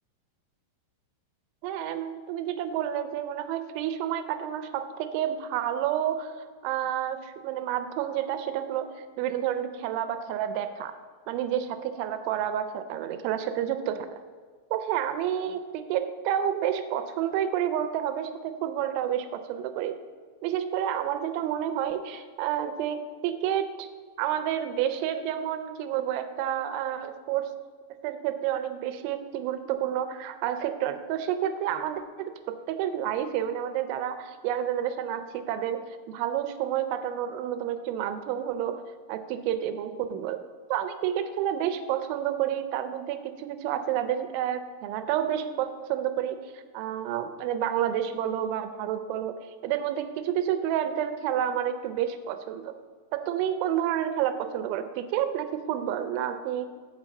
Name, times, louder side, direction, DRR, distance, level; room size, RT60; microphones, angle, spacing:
voice 1, 1.6-10.9 11.3-14.2 14.7-20.0 20.4-23.9 24.2-27.5 28.0-35.8 36.1-38.8 39.1-40.4 40.7-52.7 53.1-56.7, right 10 dB, 85° right, 10 dB, 2.8 m, -30 dB
7.4 x 5.8 x 7.5 m, 1.5 s
omnidirectional pair, 5.6 m